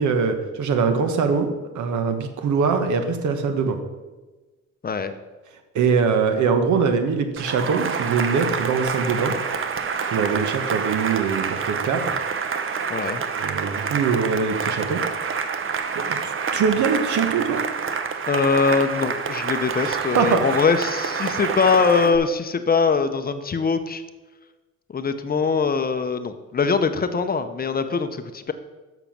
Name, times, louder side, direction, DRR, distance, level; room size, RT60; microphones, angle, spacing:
voice 1, 0.0-3.8 5.7-9.4 10.1-12.1 13.3-15.0 15.9-17.6 19.8-20.6, right 5 dB, 70° right, 7 dB, 1.1 m, -23 dB
Cheering / Applause, 7.4-22.2, right 6 dB, 45° right, 0.8 m, -27 dB
voice 2, 12.9-13.2 18.3-24.0 24.9-28.5, left 5 dB, 30° left, 9 dB, 0.6 m, -22 dB
6.9 x 6.0 x 5.9 m, 1.2 s
cardioid pair, 90°, 30 cm